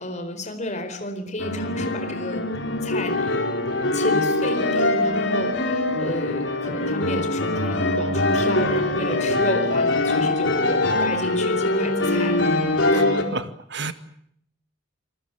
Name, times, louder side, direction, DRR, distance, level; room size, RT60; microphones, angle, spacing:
voice 1, 0.0-2.5 2.8-3.4 3.9-12.4, left 1 dB, 40° left, 7 dB, 4.4 m, -31 dB
sound 1, 1.4-13.2, left 2 dB, 75° left, 4.5 m, -23 dB
voice 2, 12.9-13.9, right 4 dB, 65° right, 11 dB, 2.0 m, -32 dB
27.5 x 20.0 x 9.2 m, 0.68 s
head